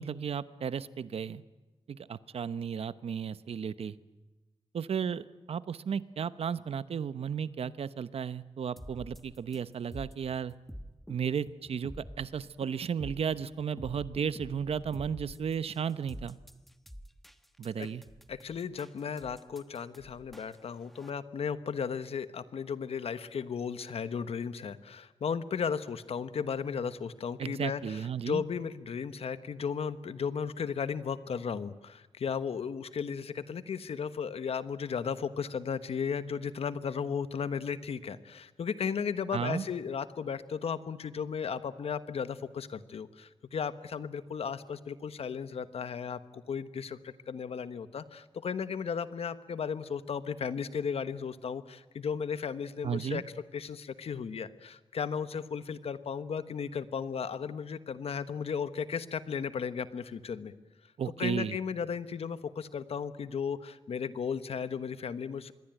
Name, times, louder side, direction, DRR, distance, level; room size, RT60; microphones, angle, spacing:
voice 1, 0.0-1.4 1.9-4.0 4.7-10.5 11.1-16.4 17.6-18.0 27.4-28.4 39.3-39.6 52.8-53.2 61.0-61.6, right 7 dB, 75° right, 15 dB, 0.9 m, -34 dB
sound 1, 8.8-21.1, equal, ahead, 1.2 m, -47 dB
voice 2, 18.3-53.2 53.5-60.5 61.2-65.5, left 6 dB, 80° left, 13 dB, 1.3 m, -35 dB
26.0 x 21.5 x 9.1 m, 1.1 s
wide cardioid pair, 140°, 10 cm